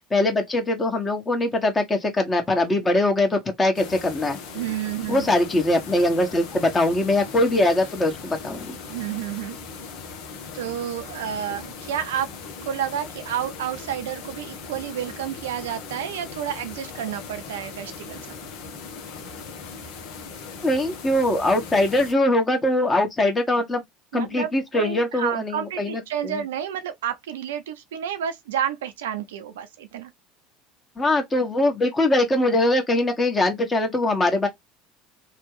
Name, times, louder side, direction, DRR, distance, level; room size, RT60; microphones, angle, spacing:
voice 1, 0.1-4.4 5.1-8.8 20.6-23.8 24.1-26.4 31.0-34.5, left 1 dB, 20° left, 1.3 m, -22 dB
sound 1, 3.7-22.1, left 5 dB, 65° left, 0.9 m, -39 dB
voice 2, 4.5-5.3 8.9-9.6 10.5-12.3 12.6-18.5 24.1-30.1, right 10 dB, 75° right, 0.5 m, -30 dB
3.3 x 2.3 x 3.2 m
hypercardioid pair, 70°, 0 cm